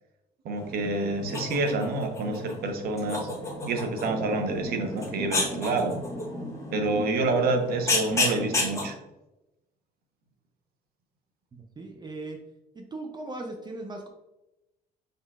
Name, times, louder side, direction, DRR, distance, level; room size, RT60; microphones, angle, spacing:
voice 1, 0.4-3.3 3.7-5.9 6.7-9.0, right 3 dB, 65° right, 4 dB, 0.9 m, -28 dB
sound 1, 0.6-8.9, left 2 dB, 15° left, 1.1 m, -32 dB
voice 2, 11.8-12.4 12.7-14.1, right 2 dB, 25° right, 3 dB, 0.5 m, -38 dB
5.3 x 3.7 x 2.4 m, 0.95 s
cardioid pair, 110°, 17 cm